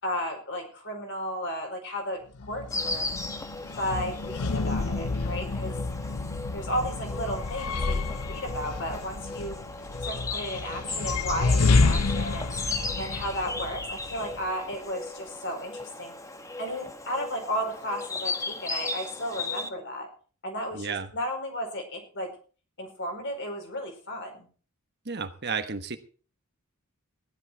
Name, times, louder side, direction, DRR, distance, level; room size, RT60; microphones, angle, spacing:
voice 1, 0.0-3.1 3.8-5.7 6.5-9.6 10.0-12.5 13.0-16.1 16.6-20.1 20.4-22.3 22.8-24.5, equal, 55° left, 3 dB, 4.7 m, -34 dB
sound 1, 2.4-14.5, left 3 dB, 85° left, 0.7 m, -29 dB
Insect, 2.7-19.7, left 3 dB, 15° left, 1.1 m, -36 dB
voice 2, 20.7-21.1 25.0-26.0, right 5 dB, 50° right, 8 dB, 1.2 m, -32 dB
15.5 x 11.5 x 4.6 m, 0.40 s
head